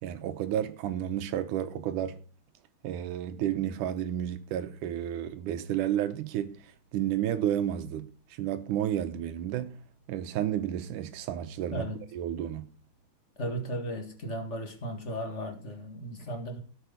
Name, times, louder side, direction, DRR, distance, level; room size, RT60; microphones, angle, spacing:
voice 1, 0.0-2.2 2.8-8.1 8.4-9.8 10.1-11.9 12.1-12.7, right 11 dB, 80° right, 2.4 m, -31 dB
voice 2, 11.7-12.0 13.4-16.6, equal, 30° left, 1.6 m, -35 dB
16.5 x 6.8 x 5.1 m
omnidirectional pair, 3.6 m